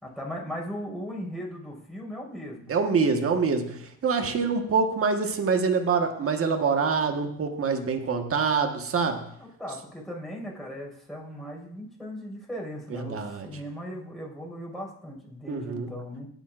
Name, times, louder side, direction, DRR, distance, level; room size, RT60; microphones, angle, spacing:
voice 1, 0.0-2.7 9.4-16.3, equal, ahead, -2 dB, 5.4 m, -38 dB
voice 2, 2.7-9.2 13.1-13.5 15.5-15.9, right 5 dB, 50° right, 5 dB, 1.5 m, -25 dB
17.0 x 9.2 x 2.5 m, 0.67 s
cardioid pair, 90°, 30 cm